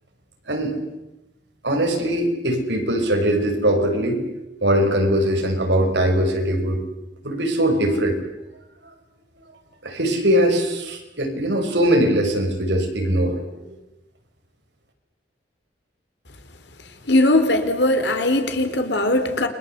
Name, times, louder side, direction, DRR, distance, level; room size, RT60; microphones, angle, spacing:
voice 1, 0.5-0.8 1.6-4.2 4.6-6.8 7.2-8.2 9.8-13.7, right 1 dB, 75° right, 4 dB, 5.8 m, -21 dB
voice 2, 17.1-19.5, left 1 dB, 75° left, 7 dB, 3.8 m, -19 dB
29.5 x 24.0 x 8.2 m, 0.98 s
head